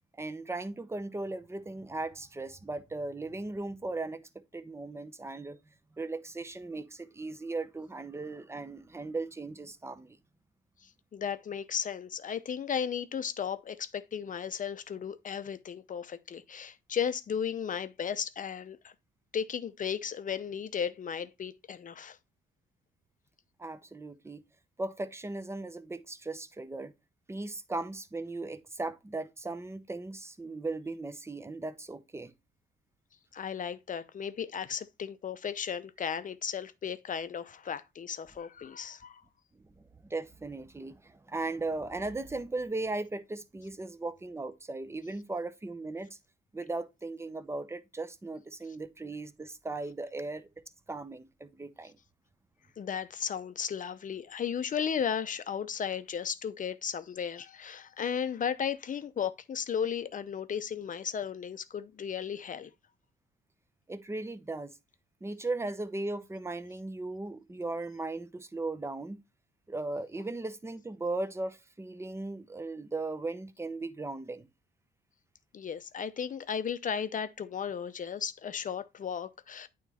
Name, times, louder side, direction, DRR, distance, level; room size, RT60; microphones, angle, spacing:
voice 1, 0.2-5.6 6.0-10.2 23.6-24.4 24.8-26.9 27.3-32.3 39.8-46.1 46.5-50.5 50.9-52.0 63.9-64.7 65.2-69.2 69.7-74.5, right 2 dB, 15° right, 0.7 m, -37 dB
voice 2, 10.8-18.9 19.3-22.2 33.3-39.2 52.8-62.7 75.5-79.7, left 7 dB, 40° left, 0.6 m, -35 dB
9.0 x 3.1 x 4.2 m
cardioid pair, 90°, 20 cm